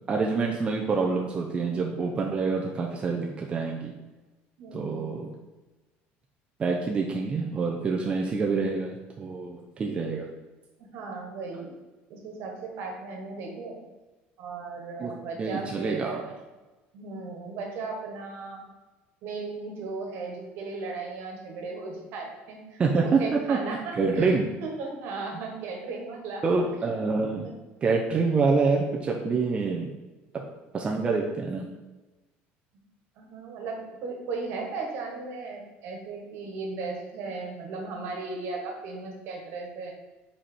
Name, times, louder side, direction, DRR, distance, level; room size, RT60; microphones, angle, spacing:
voice 1, 0.1-3.9 4.7-5.3 6.6-10.3 15.0-15.1 15.4-16.2 22.8-23.6 23.9-24.5 26.4-27.5 27.8-29.9 30.7-31.7, right 4 dB, 25° right, 0 dB, 0.5 m, -26 dB
voice 2, 4.6-5.1 10.9-11.7 12.1-13.8 14.4-16.3 16.9-18.6 19.2-24.4 24.6-26.4 27.4-27.5 33.2-39.9, right 3 dB, 60° right, 1 dB, 1.5 m, -36 dB
5.0 x 4.2 x 4.5 m, 1.1 s
cardioid pair, 150°, 5 cm